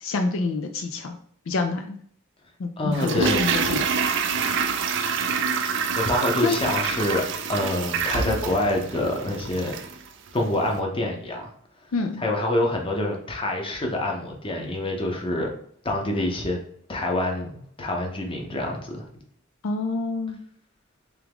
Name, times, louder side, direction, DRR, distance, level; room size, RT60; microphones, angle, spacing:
voice 1, 0.0-1.1 1.5-2.0 2.6-3.8 6.4-6.6 11.9-12.2 19.6-20.4, left 3 dB, 65° left, 6 dB, 0.4 m, -27 dB
voice 2, 2.8-3.5 5.9-7.2 7.5-9.7 10.3-11.5 12.2-15.5 15.8-16.6 16.9-19.1, left 1 dB, 25° left, 1 dB, 0.8 m, -26 dB
Toilet flush, 2.9-10.0 10.3-10.4, right 5 dB, 60° right, 0.5 m, -26 dB
3.6 x 3.4 x 3.5 m, 0.63 s
head